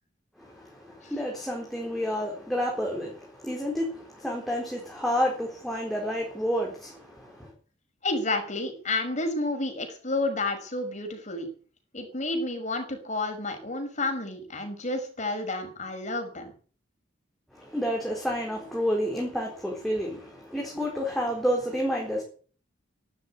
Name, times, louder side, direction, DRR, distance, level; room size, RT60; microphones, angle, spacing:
voice 1, 0.4-7.5 17.5-22.2, equal, ahead, 4.1 m, -30 dB
voice 2, 8.0-11.5 11.9-16.5, left 2 dB, 40° left, 5.4 m, -30 dB
12.5 x 12.0 x 9.6 m
head